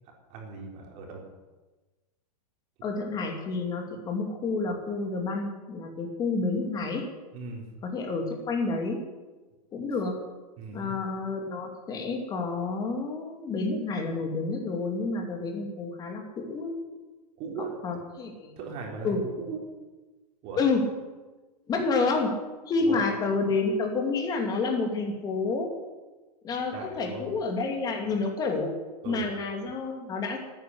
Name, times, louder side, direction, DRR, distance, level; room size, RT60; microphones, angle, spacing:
voice 1, 0.3-1.2 7.3-7.7 10.6-10.9 17.4-17.8 18.6-19.6 20.4-20.6 22.7-23.1 26.7-27.2 29.0-29.3, right 4 dB, 30° right, 0 dB, 4.2 m, -38 dB
voice 2, 2.8-7.1 7.8-9.0 9.7-10.2 10.7-16.8 17.6-18.5 19.0-19.2 20.6-20.8 21.7-22.3 22.7-25.7 26.4-28.7 29.0-30.4, left 3 dB, 20° left, 3 dB, 2.7 m, -29 dB
13.0 x 9.6 x 9.9 m, 1.2 s
hypercardioid pair, 155°, 20 cm